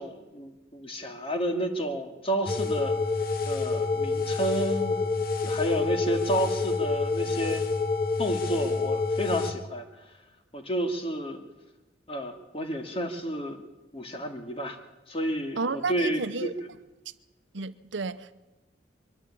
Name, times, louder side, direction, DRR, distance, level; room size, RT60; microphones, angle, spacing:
voice 1, 0.0-3.0 3.5-5.0 5.4-7.6 8.2-9.9 10.5-11.4 12.1-13.6 13.9-14.8 15.1-16.7, right 1 dB, 30° left, 2.2 m, -31 dB
sound 1, 2.5-9.5, left 4 dB, 50° left, 1.3 m, -28 dB
voice 2, 15.6-16.5 17.5-18.3, right 4 dB, 75° right, 0.9 m, -32 dB
23.0 x 13.5 x 8.5 m
head